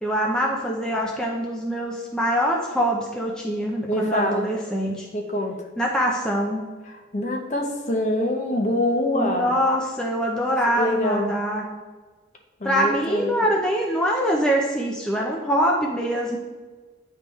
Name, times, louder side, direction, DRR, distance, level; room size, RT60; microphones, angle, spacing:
voice 1, 0.0-5.1 5.8-6.7 9.1-11.7 12.6-16.4, equal, 5° left, -2 dB, 0.5 m, -24 dB
voice 2, 3.9-4.5 5.1-5.6 7.1-9.5 10.8-11.3 12.6-13.4, left 1 dB, 35° left, 3 dB, 0.8 m, -24 dB
9.4 x 3.4 x 3.1 m, 1.4 s
head